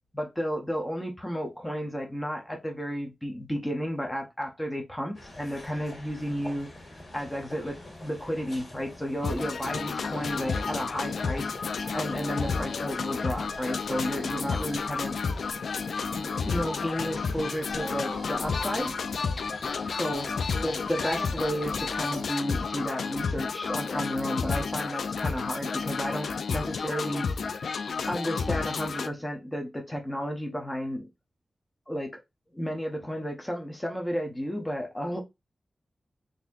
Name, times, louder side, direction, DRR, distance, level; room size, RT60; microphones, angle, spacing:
voice 1, 0.1-6.7 7.1-7.8 8.0-11.5 11.9-15.2 16.1-18.9 19.8-20.3 20.6-27.3 28.1-31.0 31.9-32.1 32.5-35.2, equal, 10° left, 0.7 m, -32 dB
sound 1, 5.1-22.2, left 2 dB, 40° left, 1.8 m, -44 dB
sound 2, 9.2-29.1, left 5 dB, 75° left, 0.3 m, -31 dB
sound 3, 10.5-10.8 11.2-11.5 11.8-12.0 12.4-14.3 14.8-15.4 16.0-17.0 17.2-20.8 21.8-21.9 22.6-22.9, equal, 15° right, 0.9 m, -47 dB
4.0 x 2.7 x 2.4 m
wide cardioid pair, 175°, 0 cm